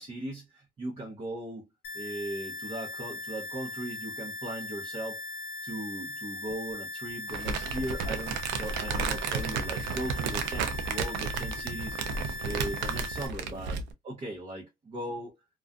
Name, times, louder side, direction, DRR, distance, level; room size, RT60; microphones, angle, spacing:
voice 1, 0.0-1.7 1.9-5.2 5.6-15.4, right 1 dB, 35° right, 0.9 m, -38 dB
sound 1, 1.8-13.3, left 2 dB, 90° left, 0.5 m, -39 dB
Crumpling crinkling, 7.3-13.9, right 5 dB, 90° right, 0.5 m, -33 dB
2.5 x 2.3 x 2.3 m
cardioid pair, 110°, 17 cm